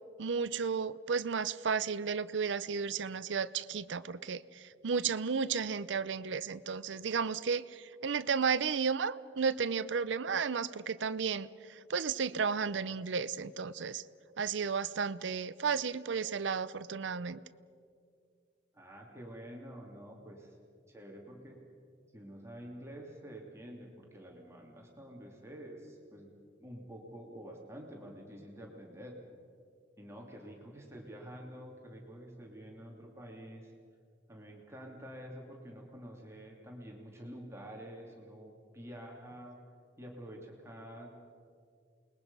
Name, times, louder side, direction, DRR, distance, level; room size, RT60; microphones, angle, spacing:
voice 1, 0.2-14.0 14.4-17.4, right 5 dB, 85° right, 15 dB, 0.6 m, -33 dB
voice 2, 18.7-20.5 20.9-21.6 22.1-26.3 26.6-29.1 30.0-33.7 34.3-39.6 40.0-41.1, equal, 15° right, -1 dB, 2.6 m, -48 dB
28.5 x 21.0 x 5.5 m, 2.3 s
head